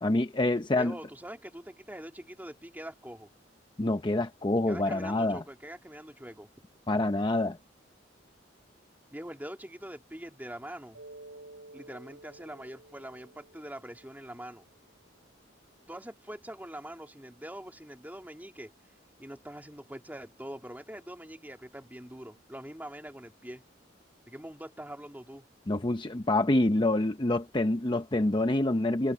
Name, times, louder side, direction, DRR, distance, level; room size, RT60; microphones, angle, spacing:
voice 1, 0.0-0.9 3.8-5.4 6.9-7.6 25.7-29.1, left 2 dB, 25° left, 0.8 m, -26 dB
voice 2, 0.8-3.3 4.7-6.5 9.1-11.0 11.7-14.6 15.9-18.7 19.2-23.6 24.3-25.4, right 1 dB, 10° right, 3.2 m, -43 dB
Mallet percussion, 10.9-15.4, right 2 dB, 85° right, 7.5 m, -53 dB
head